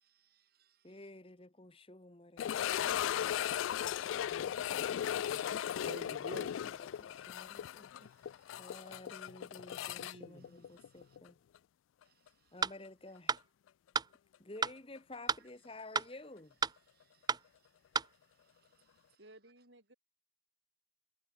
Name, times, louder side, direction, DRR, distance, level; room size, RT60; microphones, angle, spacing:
voice 1, 0.0-1.0 5.8-7.2 8.0-8.8 10.0-11.2 12.1-12.2 16.9-17.3 18.4-19.2, right 1 dB, 50° right, 2.8 m, -54 dB
voice 2, 0.8-3.4 4.1-5.7 6.3-7.9 8.6-11.4 12.5-13.3 14.4-16.5, left 2 dB, 30° left, 1.5 m, -52 dB
sound 1, 2.4-11.3 11.5-11.6 12.3-12.4 15.0-15.1, left 10 dB, 85° left, 0.3 m, -37 dB
sound 2, 12.6-12.8 13.3-13.4 14.0-14.1 14.6-14.8 15.3-15.4 16.0-16.1 16.6-16.8 17.3-17.4 18.0-18.1, right 5 dB, 20° right, 0.6 m, -32 dB
voice 3, 19.2-19.9, right 1 dB, 70° right, 6.5 m, -58 dB
head